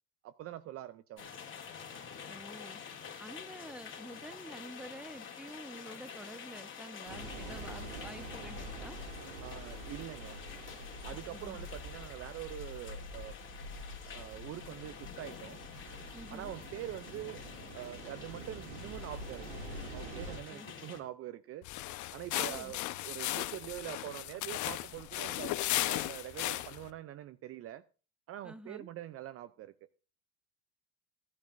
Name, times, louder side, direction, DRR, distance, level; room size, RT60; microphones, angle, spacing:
voice 1, 0.2-1.3 9.4-10.4 11.0-13.4 14.0-15.6 16.3-19.6 19.9-21.7 22.1-25.6 25.8-27.8 28.3-29.7, right 13 dB, 40° right, 0.5 m, -44 dB
sound 1, 1.2-21.0, left 7 dB, 35° left, 2.6 m, -48 dB
voice 2, 2.3-2.8 3.2-9.0 11.3-11.6 16.1-16.5 20.5-20.7 22.3-22.7 28.4-28.9, right 1 dB, 5° right, 1.0 m, -49 dB
sound 2, 7.1-20.4, right 1 dB, 90° right, 2.7 m, -46 dB
sound 3, 21.6-26.9, left 15 dB, 55° left, 1.0 m, -36 dB
16.5 x 10.5 x 2.6 m
supercardioid pair, 95°, 35 cm